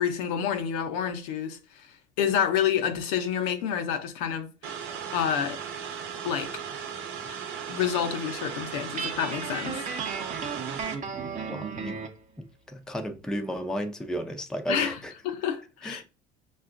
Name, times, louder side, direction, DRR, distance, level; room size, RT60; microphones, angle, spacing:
voice 1, 0.0-1.9 2.2-4.8 5.1-5.6 6.2-6.6 7.2-7.4 7.7-9.8 14.7-15.0 15.2-16.0, left 8 dB, 85° left, 0.7 m, -28 dB
sound 1, 4.6-10.9, right 7 dB, 70° right, 0.8 m, -37 dB
Guitar, 9.0-12.2, right 5 dB, 40° right, 0.7 m, -34 dB
voice 2, 11.1-12.0 12.4-15.1 15.8-16.0, equal, 5° left, 0.5 m, -34 dB
5.6 x 2.4 x 2.4 m
supercardioid pair, 85°, 20 cm